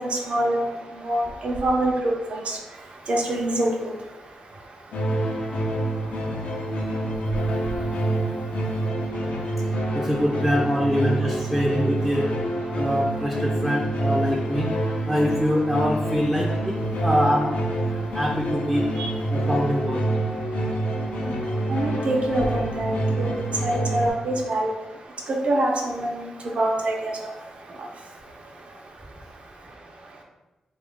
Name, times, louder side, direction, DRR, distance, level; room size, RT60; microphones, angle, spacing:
voice 1, 0.3-0.7 1.0-2.6 3.1-3.9 19.0-19.1 21.7-23.3 23.6-24.7 25.3-26.3 26.6-27.1, right 1 dB, 55° right, 1 dB, 0.7 m, -25 dB
sound 1, 4.9-24.1, right 1 dB, 75° left, 0.5 m, -27 dB
voice 2, 9.9-12.3 12.7-14.7 15.1-16.8 17.0-17.5 18.1-18.8 19.3-20.0, equal, 10° right, -3 dB, 0.5 m, -24 dB
3.7 x 2.4 x 3.6 m, 1.1 s
wide cardioid pair, 100°, 2 cm